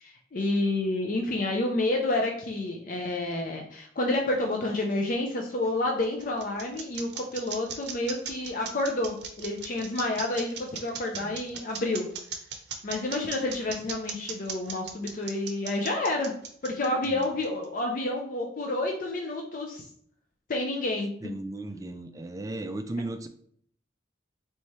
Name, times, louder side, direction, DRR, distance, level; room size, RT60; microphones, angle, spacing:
voice 1, 0.0-12.1 12.8-16.3 16.6-19.8 20.5-21.1, left 2 dB, 45° left, 2 dB, 0.5 m, -29 dB
sound 1, 5.6-17.6, right 6 dB, 65° right, 0.6 m, -38 dB
voice 2, 17.0-17.4 21.2-23.3, right 2 dB, 20° right, 8 dB, 0.3 m, -36 dB
3.4 x 3.1 x 4.2 m, 0.62 s
head